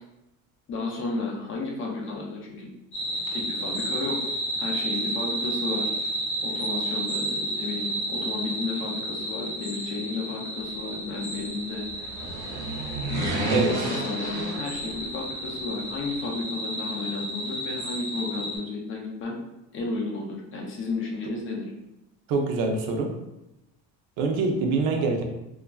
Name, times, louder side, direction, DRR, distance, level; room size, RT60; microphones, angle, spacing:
voice 1, 0.7-2.7 3.3-4.3 4.6-5.9 6.4-12.1 13.0-19.4 19.7-21.7, left 3 dB, 35° left, -1 dB, 0.5 m, -33 dB
sound 1, 2.9-18.6, right 1 dB, 55° left, 1.4 m, -32 dB
sound 2, 11.8-15.2 15.5-15.6, right 2 dB, 55° right, 1.0 m, -31 dB
voice 2, 22.3-23.1 24.2-25.2, right 3 dB, 80° right, 3 dB, 0.6 m, -24 dB
3.1 x 2.4 x 2.2 m, 0.93 s
cardioid pair, 155°, 36 cm